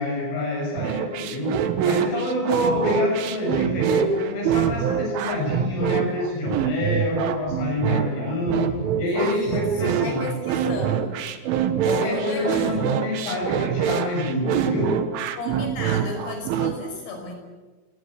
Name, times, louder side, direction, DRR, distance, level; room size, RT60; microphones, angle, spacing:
voice 1, 0.0-1.6 1.8-10.3 10.6-10.8 11.9-15.0, left 1 dB, 70° left, 0 dB, 8.7 m, -26 dB
sound 1, 0.8-16.7, right 9 dB, 75° right, 3.8 m, -25 dB
voice 2, 9.1-11.2 12.0-13.0 15.4-17.3, left 2 dB, 55° left, 4 dB, 7.3 m, -33 dB
29.5 x 18.5 x 8.3 m, 1.3 s
omnidirectional pair, 5.9 m